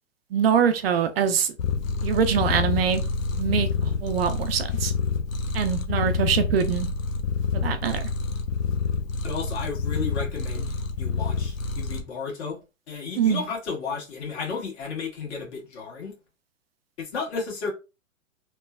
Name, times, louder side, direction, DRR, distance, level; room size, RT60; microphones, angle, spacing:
voice 1, 0.3-1.5 2.0-3.0 3.4-4.9 5.5-6.9 7.5-8.1 13.2-13.4, right 7 dB, 50° right, 0.4 m, -24 dB
Purr, 1.6-12.0, left 4 dB, 80° left, 0.7 m, -27 dB
voice 2, 9.2-12.6 12.9-16.1 17.0-17.7, left 5 dB, 55° left, 1.5 m, -33 dB
3.0 x 2.1 x 2.3 m
hypercardioid pair, 120°, 40 cm